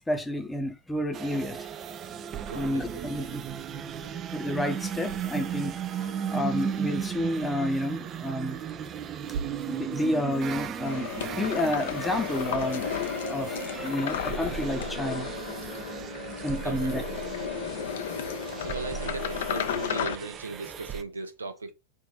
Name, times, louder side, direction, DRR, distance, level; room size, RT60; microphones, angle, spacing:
voice 1, 0.1-1.7 2.5-3.4 4.3-8.6 9.7-15.5 16.4-17.0, left 1 dB, 5° left, 0.7 m, -30 dB
sound 1, 1.1-21.0, right 8 dB, 30° right, 0.3 m, -36 dB
voice 2, 2.5-3.3 4.0-4.2 16.6-17.1 18.6-21.7, right 3 dB, 75° right, 0.6 m, -38 dB
sound 2, 5.1-7.1 8.6-8.8 9.1-12.7 13.3-13.4, right 5 dB, 55° right, 1.1 m, -44 dB
sound 3, 10.8-20.2, left 9 dB, 55° left, 0.5 m, -33 dB
3.6 x 2.5 x 3.9 m
figure-of-eight pair, 90°, 0 cm